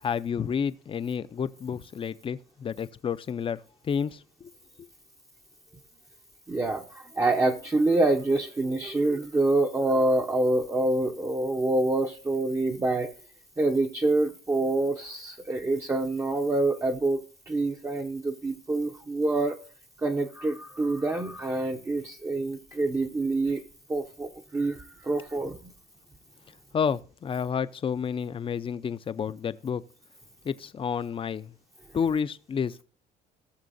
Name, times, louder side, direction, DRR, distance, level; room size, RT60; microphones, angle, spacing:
voice 1, 0.0-4.5 26.7-29.8 30.4-31.5 31.9-32.8, left 7 dB, 30° left, 0.5 m, -30 dB
voice 2, 6.5-13.1 13.6-19.6 20.0-23.6 23.9-25.6, right 2 dB, 15° right, 0.6 m, -26 dB
17.5 x 6.8 x 2.6 m
cardioid pair, 110°, 17 cm